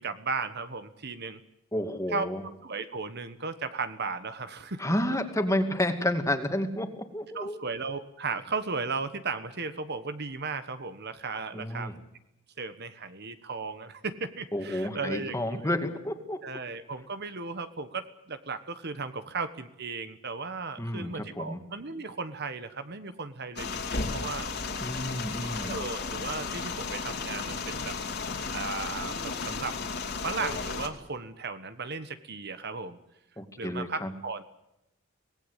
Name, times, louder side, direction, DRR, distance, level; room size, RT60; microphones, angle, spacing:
voice 1, 0.0-1.4 2.1-2.3 2.6-4.8 7.3-12.0 12.6-15.7 16.4-24.5 25.6-28.0 28.3-29.7 30.2-33.0 33.6-34.4, right 4 dB, 50° right, 11 dB, 1.4 m, -36 dB
voice 2, 1.7-2.4 4.8-7.6 11.5-11.9 14.5-16.4 20.8-21.6 24.8-25.8 33.4-34.1, left 1 dB, 15° left, 6 dB, 2.3 m, -30 dB
sound 1, 23.6-30.9, left 4 dB, 50° left, 3.0 m, -34 dB
25.0 x 18.5 x 8.3 m, 0.87 s
head